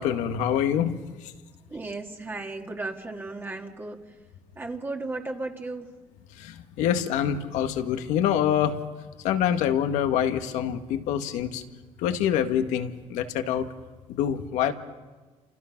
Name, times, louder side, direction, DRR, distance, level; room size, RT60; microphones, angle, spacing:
voice 1, 0.0-1.3 6.4-8.8 9.2-11.6 12.0-13.7 14.1-14.7, left 9 dB, 85° left, 7 dB, 1.8 m, -26 dB
voice 2, 1.7-4.2 4.6-5.9, right 2 dB, 20° right, 2 dB, 1.9 m, -35 dB
30.0 x 27.5 x 6.0 m, 1.3 s
cardioid pair, 125°, 12 cm